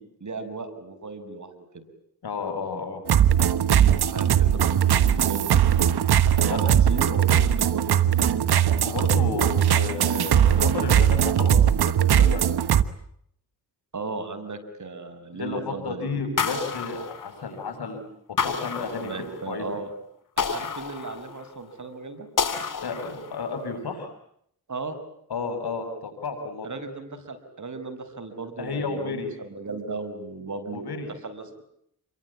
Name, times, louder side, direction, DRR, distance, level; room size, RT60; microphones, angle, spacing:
voice 1, 0.0-1.8 4.1-5.7 6.2-8.4 13.9-16.1 19.0-19.9 20.4-22.3 24.7-25.0 26.6-31.6, right 3 dB, 50° right, 9 dB, 6.2 m, -36 dB
voice 2, 2.2-3.0 6.5-6.6 8.8-12.7 15.3-18.0 18.4-19.7 22.8-24.1 25.3-26.7 28.6-29.3 30.7-31.1, left 4 dB, 75° left, 6 dB, 7.4 m, -32 dB
sound 1, 3.1-12.8, right 9 dB, 75° right, 1.3 m, -20 dB
sound 2, 16.4-17.7 18.4-19.6 20.4-21.6 22.4-23.5, left 6 dB, 55° left, 3.1 m, -30 dB
28.0 x 23.5 x 8.8 m, 0.70 s
cardioid pair, 55°, 39 cm